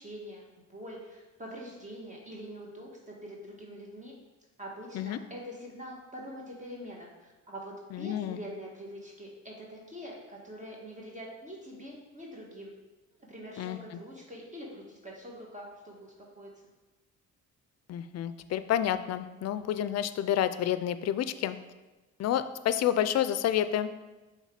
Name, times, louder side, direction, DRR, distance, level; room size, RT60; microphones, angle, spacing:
voice 1, 0.0-4.1 4.6-12.7 13.1-16.5, equal, 25° right, -2 dB, 1.4 m, -44 dB
voice 2, 7.9-8.4 13.6-14.0 17.9-21.6 22.2-23.9, left 10 dB, 60° left, 13 dB, 0.4 m, -29 dB
5.6 x 3.6 x 4.8 m, 1.1 s
cardioid pair, 90°, 30 cm